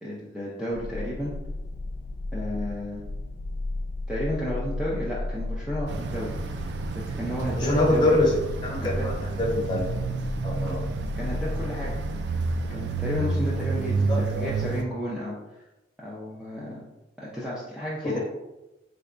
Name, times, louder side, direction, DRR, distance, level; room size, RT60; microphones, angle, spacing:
voice 1, 0.0-1.3 2.3-3.0 4.1-6.4 7.0-8.2 8.8-9.1 11.2-12.0 12.7-15.4 16.0-16.8 17.2-18.2, equal, 5° right, -8 dB, 0.5 m, -32 dB
sound 1, 0.7-13.6, left 2 dB, 75° left, 0.3 m, -35 dB
sound 2, 5.9-14.8, right 3 dB, 60° right, 0.3 m, -30 dB
voice 2, 7.5-8.3 8.6-9.0 9.4-9.9 10.4-10.8 14.1-14.5 18.0-18.2, left 2 dB, 25° left, -4 dB, 0.9 m, -24 dB
3.9 x 3.3 x 2.5 m, 0.99 s
head